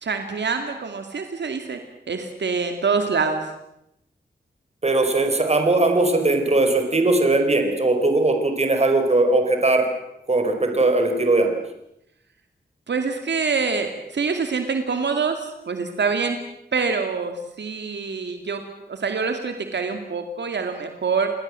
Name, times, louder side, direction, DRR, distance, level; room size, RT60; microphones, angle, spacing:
voice 1, 0.0-1.8 2.1-3.4 12.9-16.4 16.7-18.6 18.9-21.3, right 5 dB, 80° right, 6 dB, 2.5 m, -25 dB
voice 2, 4.8-9.8 10.3-11.5, right 2 dB, 35° right, 5 dB, 4.7 m, -19 dB
28.5 x 20.0 x 7.7 m, 0.82 s
wide cardioid pair, 110°, 18 cm